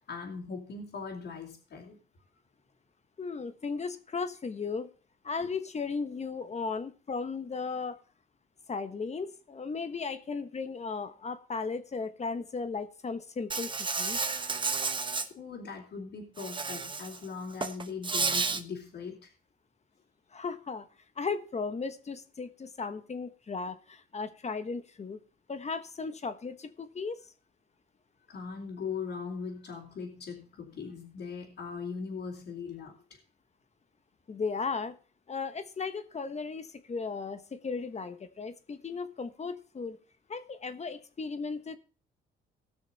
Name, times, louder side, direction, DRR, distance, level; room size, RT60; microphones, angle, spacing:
voice 1, 0.0-2.0 15.3-19.3 28.3-33.2, left 5 dB, 60° left, -5 dB, 3.5 m, -40 dB
voice 2, 3.2-4.9 5.2-8.0 8.7-14.2 20.3-20.9 21.2-25.2 25.5-27.2 34.3-34.9 35.3-40.0 40.3-41.8, left 4 dB, 35° left, 11 dB, 1.2 m, -36 dB
Insect, 13.5-15.3 16.4-17.2 17.5-18.6, right 4 dB, 25° right, 1.1 m, -31 dB
18.5 x 6.3 x 4.1 m, 0.37 s
cardioid pair, 90°, 20 cm